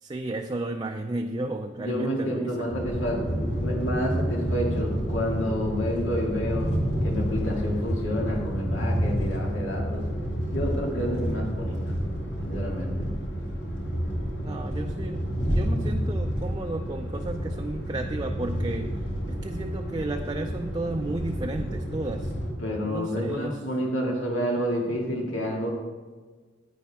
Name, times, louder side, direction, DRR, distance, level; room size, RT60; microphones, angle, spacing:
voice 1, 0.0-2.7 14.4-19.0 19.3-22.3 22.8-23.6, right 2 dB, 20° right, 4 dB, 0.4 m, -33 dB
voice 2, 1.8-6.7 7.0-10.0 10.5-11.9 12.4-13.1 22.6-25.7, equal, 90° left, -1 dB, 2.2 m, -29 dB
sound 1, 2.7-22.5, equal, 70° left, 2.0 m, -29 dB
10.0 x 9.1 x 3.5 m, 1.4 s
head